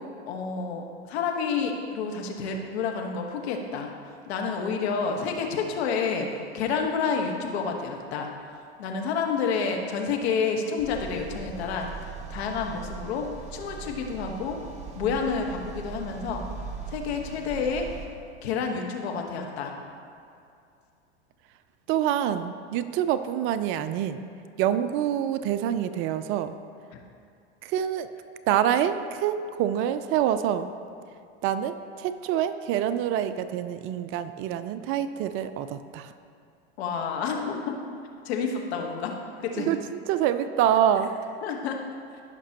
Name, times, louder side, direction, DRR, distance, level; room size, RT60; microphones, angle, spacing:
voice 1, 0.3-3.9 4.3-8.3 8.8-11.9 12.3-14.6 14.9-16.4 16.9-17.9 18.4-19.8 36.8-37.8 38.2-39.7 41.4-41.8, left 5 dB, 70° left, 2 dB, 1.4 m, -29 dB
sound 1, 10.8-18.1, right 6 dB, 20° right, 1.1 m, -40 dB
voice 2, 21.9-24.2 24.6-26.5 27.6-28.1 28.5-30.7 31.4-36.1 39.6-41.1, right 10 dB, 40° right, 11 dB, 0.4 m, -26 dB
16.0 x 5.9 x 2.9 m, 2.5 s
hypercardioid pair, 110°, 33 cm